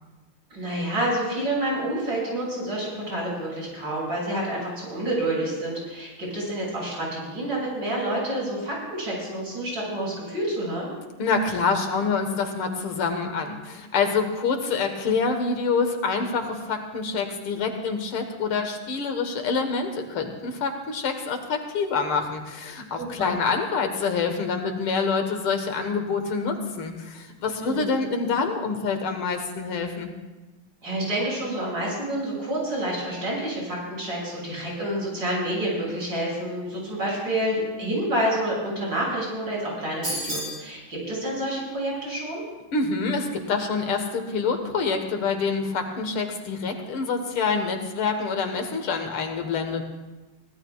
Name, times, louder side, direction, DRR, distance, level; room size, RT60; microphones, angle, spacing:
voice 1, 0.5-10.9 23.0-23.3 27.6-27.9 30.8-42.4, right 1 dB, 60° right, -4 dB, 7.2 m, -28 dB
voice 2, 11.2-30.1 42.7-49.8, left 4 dB, 80° left, 5 dB, 2.3 m, -26 dB
sound 1, 40.0-40.6, equal, 35° right, 5.0 m, -30 dB
24.0 x 17.0 x 2.4 m, 1.1 s
omnidirectional pair, 2.3 m